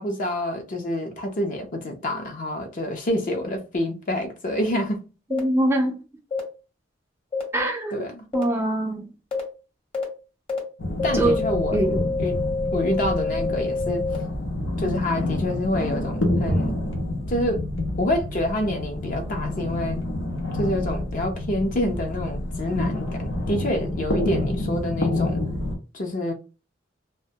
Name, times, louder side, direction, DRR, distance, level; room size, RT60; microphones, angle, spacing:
voice 1, 0.0-5.0 7.9-8.3 11.0-11.8 12.2-12.4 12.7-14.1 14.8-16.8 17.3-17.7 18.0-20.0 20.6-25.4 25.9-26.3, left 1 dB, 45° left, 0.5 m, -27 dB
sound 1, 5.3-5.4 6.3-6.4 7.3-7.4 8.3-8.4 9.3-9.4 9.9-10.0 10.5-10.6 11.0-14.2, left 4 dB, 30° left, 0.9 m, -27 dB
voice 2, 5.3-6.0 7.5-8.1 8.3-9.1 11.1-11.4 11.7-12.1, right 1 dB, 15° right, 0.3 m, -23 dB
sound 2, 10.8-25.8, left 1 dB, 90° left, 0.7 m, -28 dB
2.1 x 2.1 x 2.7 m
head